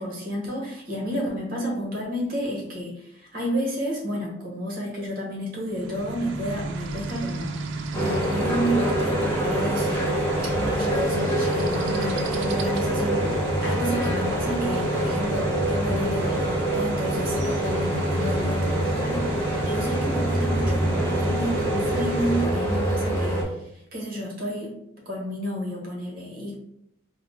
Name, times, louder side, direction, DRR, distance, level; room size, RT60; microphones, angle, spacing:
voice 1, 0.0-23.6 23.9-24.7 25.1-26.5, equal, 50° right, -1 dB, 1.1 m, -31 dB
sound 1, 5.7-22.5, right 3 dB, 80° right, 0.3 m, -32 dB
sound 2, 7.9-23.4, right 1 dB, 10° left, 0.7 m, -25 dB
3.8 x 2.1 x 3.2 m, 0.79 s
head